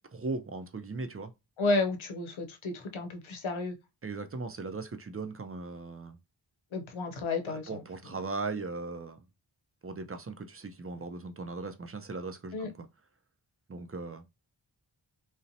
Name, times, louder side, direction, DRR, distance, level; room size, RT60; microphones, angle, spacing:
voice 1, 0.1-1.3 4.0-6.2 7.5-9.2 9.8-12.7 13.7-14.2, right 3 dB, 30° right, 0.4 m, -38 dB
voice 2, 1.6-3.8 6.7-8.1 12.5-12.7, left 3 dB, 90° left, 0.6 m, -32 dB
2.7 x 2.0 x 2.6 m
wide cardioid pair, 60°, 46 cm